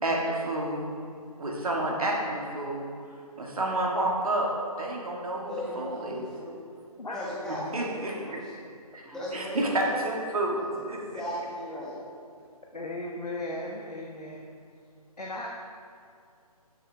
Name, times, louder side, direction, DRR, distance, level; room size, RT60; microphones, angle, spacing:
voice 1, 0.0-0.9 1.4-2.9 3.4-4.5 4.8-6.3 7.7-8.4 8.9-10.6 10.9-11.0, right 1 dB, 65° right, -1 dB, 1.9 m, -29 dB
voice 2, 5.5-6.4 7.1-8.5 9.0-10.0 10.6-12.0, equal, 5° left, -9 dB, 1.5 m, -37 dB
voice 3, 12.7-14.5 15.2-15.5, left 1 dB, 85° left, -1 dB, 1.1 m, -36 dB
11.0 x 6.8 x 3.3 m, 2.4 s
figure-of-eight pair, 150°, 20 cm